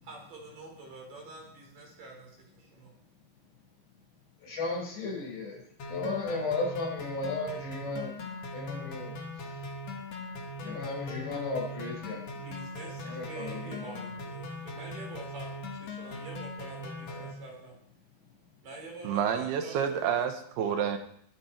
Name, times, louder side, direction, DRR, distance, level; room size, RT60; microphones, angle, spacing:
voice 1, 0.0-2.9 12.4-17.7 18.6-20.0, right 3 dB, 55° right, 0 dB, 5.5 m, -46 dB
voice 2, 4.4-5.6 5.9-8.1 8.5-9.1 9.4-9.6 10.6-12.5 13.0-13.9, left 3 dB, 90° left, -1 dB, 7.3 m, -35 dB
sound 1, 5.8-17.3, left 1 dB, 50° left, 2.5 m, -40 dB
voice 3, 19.0-21.0, right 8 dB, 75° right, 7 dB, 3.1 m, -29 dB
22.5 x 8.9 x 4.6 m, 0.65 s
omnidirectional pair, 4.7 m